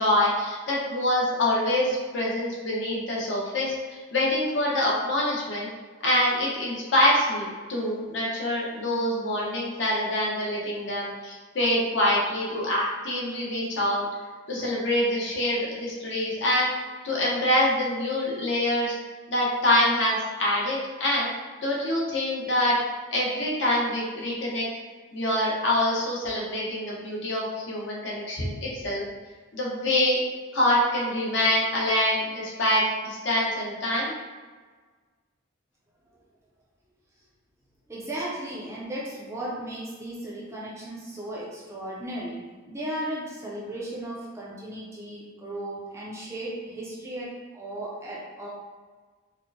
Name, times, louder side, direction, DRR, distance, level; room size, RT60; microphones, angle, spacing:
voice 1, 0.0-5.7 6.0-14.0 14.5-16.7 17.0-18.9 19.3-21.3 21.6-22.8 23.1-24.7 25.1-29.0 29.5-30.2 30.5-34.1, left 1 dB, 60° left, -4 dB, 0.8 m, -25 dB
voice 2, 37.9-42.4 42.7-48.5, right 1 dB, 15° right, -6 dB, 0.5 m, -35 dB
4.3 x 2.1 x 2.6 m, 1.4 s
head